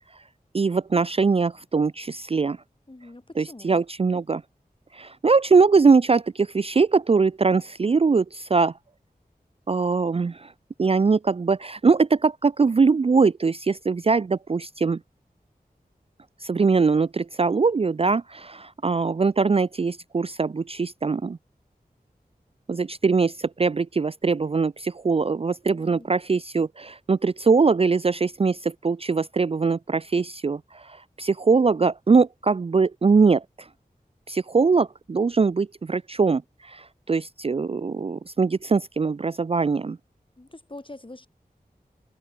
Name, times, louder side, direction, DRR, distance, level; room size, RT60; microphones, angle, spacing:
voice 1, 0.5-2.6 3.4-4.4 4.9-8.7 9.7-10.5 10.8-15.0 16.4-21.4 22.7-33.7 34.3-40.0, right 4 dB, 40° right, 0.4 m, -22 dB
voice 2, 2.9-3.8 25.7-26.1 40.4-41.3, left 2 dB, 35° left, 5.1 m, -44 dB
wide cardioid pair, 65°, 16 cm